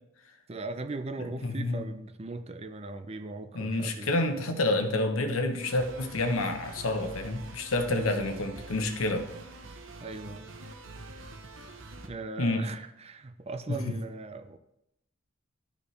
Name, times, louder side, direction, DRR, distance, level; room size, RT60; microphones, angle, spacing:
voice 1, 0.5-4.4 8.0-8.3 10.0-10.5 12.0-14.6, right 3 dB, 30° right, 0.5 m, -39 dB
voice 2, 1.4-1.8 3.5-9.3 12.4-12.6 13.7-14.0, left 2 dB, 90° left, 1.0 m, -28 dB
sound 1, 5.6-12.1, right 2 dB, 70° right, 0.9 m, -45 dB
12.0 x 5.1 x 3.3 m
head